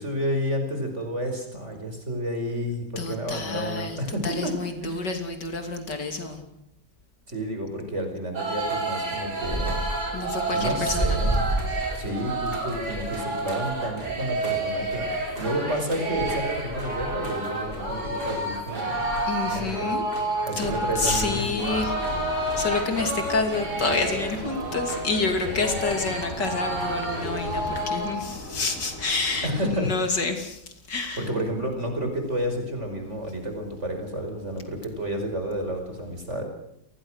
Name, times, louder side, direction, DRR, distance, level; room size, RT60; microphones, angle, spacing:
voice 1, 0.0-4.5 4.8-5.0 7.3-9.8 10.5-11.4 12.0-19.1 19.5-19.9 20.5-21.5 29.4-29.9 31.2-36.4, equal, 40° right, 4 dB, 5.7 m, -30 dB
voice 2, 3.0-6.4 10.1-11.3 19.3-20.0 20.6-31.3, left 3 dB, 70° left, 6 dB, 3.5 m, -29 dB
sound 1, 8.3-28.2, right 2 dB, 60° right, 5.5 m, -30 dB
sound 2, 9.0-23.5, right 1 dB, ahead, 5.3 m, -35 dB
sound 3, 20.7-29.8, left 1 dB, 45° left, 6.6 m, -38 dB
28.0 x 20.5 x 6.5 m, 0.78 s
omnidirectional pair, 1.9 m